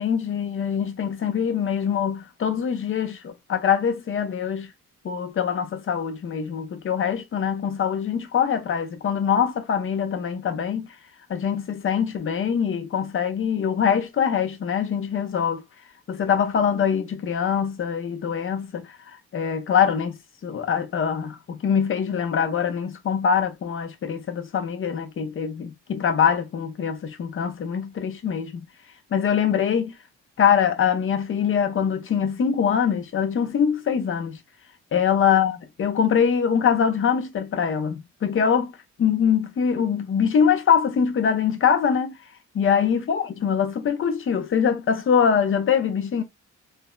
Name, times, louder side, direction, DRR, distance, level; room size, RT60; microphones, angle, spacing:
voice 1, 0.0-4.7 5.0-10.9 11.3-15.6 16.1-28.7 29.1-29.9 30.4-34.4 34.9-38.7 39.0-42.1 42.5-46.2, left 7 dB, 45° left, 0.7 m, -23 dB
3.4 x 2.2 x 2.3 m
cardioid pair, 90°, 30 cm